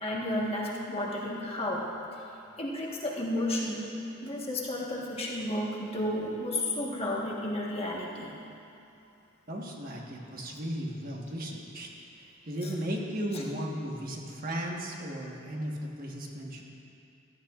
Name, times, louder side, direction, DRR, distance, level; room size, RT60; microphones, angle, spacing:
voice 1, 0.0-1.8 2.1-2.2 2.6-3.9 4.2-8.4 12.6-12.7 13.3-13.4, left 1 dB, 30° left, -3 dB, 1.3 m, -32 dB
voice 2, 9.5-11.9 12.4-16.6, equal, 45° right, -1 dB, 1.3 m, -35 dB
15.5 x 13.5 x 2.5 m, 2.7 s
head